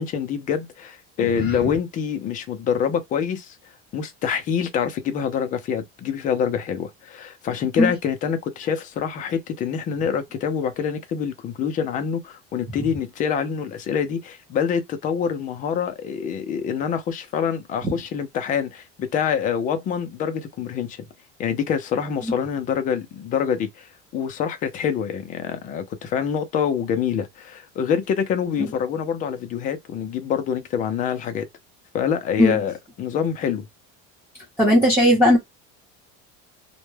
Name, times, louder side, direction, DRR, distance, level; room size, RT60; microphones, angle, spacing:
voice 1, 0.0-3.6 3.9-21.0 21.4-31.5 31.9-33.7, left 7 dB, 25° left, 0.4 m, -26 dB
voice 2, 34.6-35.4, equal, 10° right, 0.7 m, -17 dB
2.1 x 2.1 x 3.1 m
cardioid pair, 170°, 31 cm